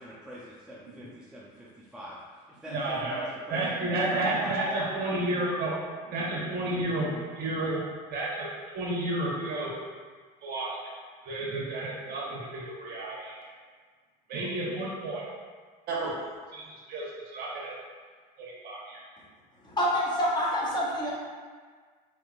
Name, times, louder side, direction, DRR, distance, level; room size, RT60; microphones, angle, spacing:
voice 1, 0.0-3.6 4.0-4.9 14.3-14.8, equal, 5° right, -9 dB, 0.6 m, -43 dB
voice 2, 2.6-3.2 3.5-5.8 6.1-7.9 8.1-8.5 8.7-9.7 10.4-10.8 11.2-13.4 14.3-15.2 15.9-17.1 17.3-17.7 18.4-19.0, right 2 dB, 50° right, -5 dB, 1.2 m, -31 dB
voice 3, 19.5-21.1, equal, 20° left, -6 dB, 1.2 m, -27 dB
3.9 x 3.5 x 2.4 m, 1.6 s
supercardioid pair, 95°, 20 cm